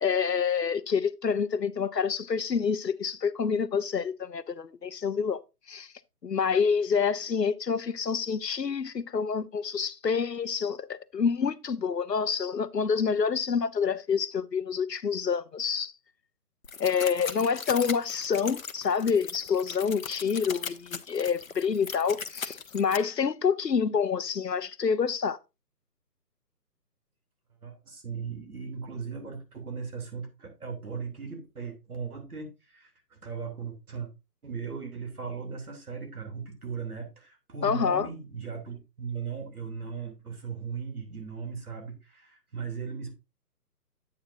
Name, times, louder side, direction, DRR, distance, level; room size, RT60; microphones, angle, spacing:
voice 1, 0.0-5.4 5.7-5.9 6.2-15.9 16.8-25.4 37.6-38.1, left 6 dB, 85° left, 0.9 m, -27 dB
sound 1, 16.6-23.0, left 6 dB, 55° left, 0.9 m, -38 dB
voice 2, 27.6-34.1 34.4-43.1, right 5 dB, 65° right, 3.1 m, -38 dB
8.8 x 8.7 x 2.6 m
figure-of-eight pair, 145°, 48 cm